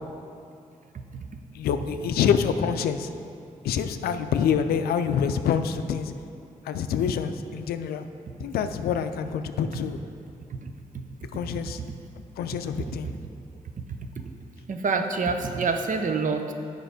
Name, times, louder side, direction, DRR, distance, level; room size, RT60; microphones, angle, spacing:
voice 1, 1.5-3.1 3.6-6.1 6.7-8.1 8.4-10.0 11.3-11.8 12.4-13.1, left 7 dB, 85° left, 9 dB, 0.4 m, -26 dB
voice 2, 10.5-11.0 12.9-13.0 14.0-14.1 14.7-16.5, right 4 dB, 55° right, 6 dB, 0.7 m, -27 dB
7.9 x 5.2 x 4.9 m, 2.6 s
supercardioid pair, 45°, 16 cm